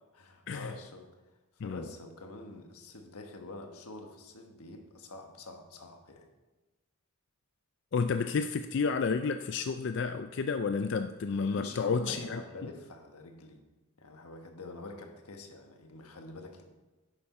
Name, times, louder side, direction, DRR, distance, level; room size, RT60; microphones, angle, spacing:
voice 1, 0.1-1.1 1.5-6.3 11.5-13.6 14.0-16.6, left 2 dB, 90° left, 4 dB, 1.4 m, -46 dB
voice 2, 7.9-12.4, left 5 dB, 55° left, 8 dB, 0.4 m, -31 dB
10.5 x 8.8 x 4.2 m, 1.2 s
head